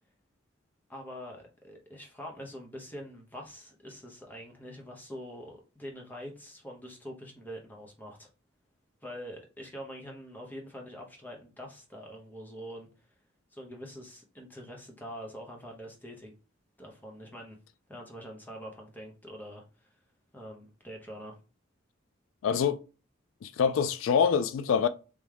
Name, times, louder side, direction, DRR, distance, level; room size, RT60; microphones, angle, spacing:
voice 1, 0.9-8.3 9.0-13.1 13.5-16.3 16.8-17.6 17.9-19.9 20.3-21.4, equal, 10° left, 0.9 m, -44 dB
voice 2, 22.4-22.8 23.4-24.9, left 7 dB, 80° left, 0.3 m, -25 dB
3.5 x 3.0 x 3.3 m
head